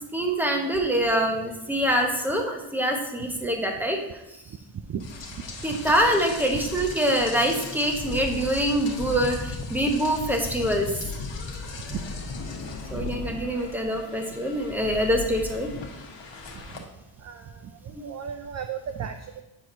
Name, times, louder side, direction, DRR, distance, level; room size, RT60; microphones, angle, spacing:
voice 1, 0.1-4.0 5.6-10.9 12.9-15.7 17.9-18.0, equal, 5° right, 2 dB, 1.0 m, -25 dB
Rain, 5.0-16.8, left 3 dB, 60° left, 1.2 m, -36 dB
voice 2, 17.2-19.4, right 7 dB, 35° right, 7 dB, 0.4 m, -35 dB
7.9 x 4.7 x 2.7 m, 0.99 s
cardioid pair, 80°, 49 cm